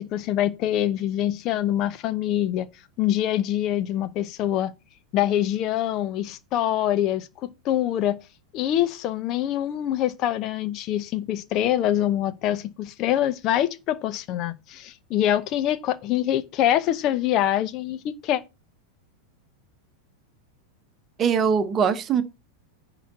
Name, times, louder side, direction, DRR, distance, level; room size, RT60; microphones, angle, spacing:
voice 1, 0.0-2.7 3.0-4.7 5.1-8.2 8.5-18.4, left 12 dB, 35° left, 0.9 m, -25 dB
voice 2, 21.2-22.2, right 6 dB, 25° right, 1.2 m, -21 dB
10.5 x 4.1 x 7.2 m
figure-of-eight pair, 90°, 0 cm